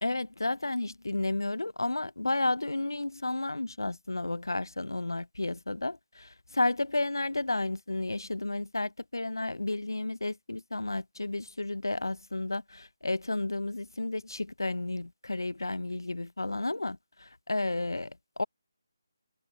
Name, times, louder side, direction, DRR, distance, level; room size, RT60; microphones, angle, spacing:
voice 1, 0.0-18.4, left 2 dB, 80° left, 0.6 m, -32 dB
figure-of-eight pair, 150°, 2 cm